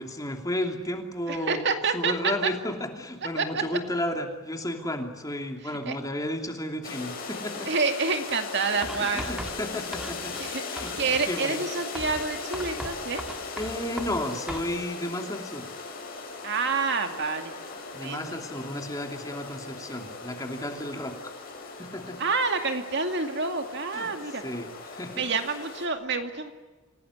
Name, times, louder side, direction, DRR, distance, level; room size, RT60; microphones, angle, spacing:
voice 1, 0.0-7.7 9.1-10.3 10.7-11.6 13.6-15.7 17.9-21.3 21.8-22.2 23.9-25.2, left 1 dB, 15° left, 4 dB, 2.9 m, -33 dB
voice 2, 1.3-2.5 3.4-3.6 5.6-6.0 7.7-9.2 10.4-13.2 16.4-17.5 18.0-18.2 22.2-24.4 25.2-26.5, right 4 dB, 50° right, 6 dB, 2.3 m, -28 dB
sound 1, 6.8-25.9, left 4 dB, 40° left, 6.3 m, -38 dB
Writing, 8.8-10.5 10.8-11.3 11.9-14.7, equal, 5° right, 1.8 m, -39 dB
28.0 x 18.5 x 10.0 m, 1.3 s
head